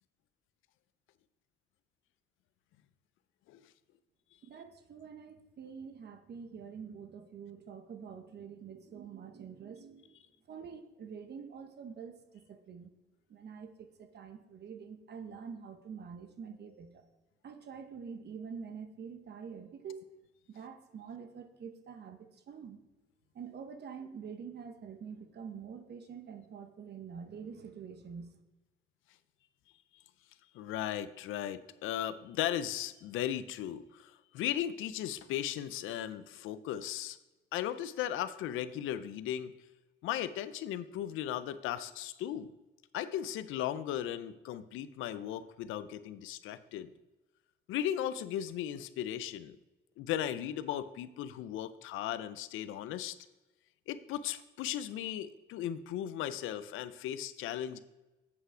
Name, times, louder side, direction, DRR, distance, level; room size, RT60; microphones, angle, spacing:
voice 1, 4.4-12.9 13.3-17.0 17.4-20.1 20.5-22.8 23.3-28.3, right 6 dB, 55° right, 8 dB, 1.0 m, -46 dB
voice 2, 30.5-37.2 37.5-39.5 40.0-42.5 42.9-46.9 47.7-49.6 50.0-53.2 53.9-57.8, left 11 dB, 90° left, 13 dB, 0.5 m, -36 dB
8.0 x 5.5 x 4.9 m, 1.1 s
cardioid pair, 90°, 20 cm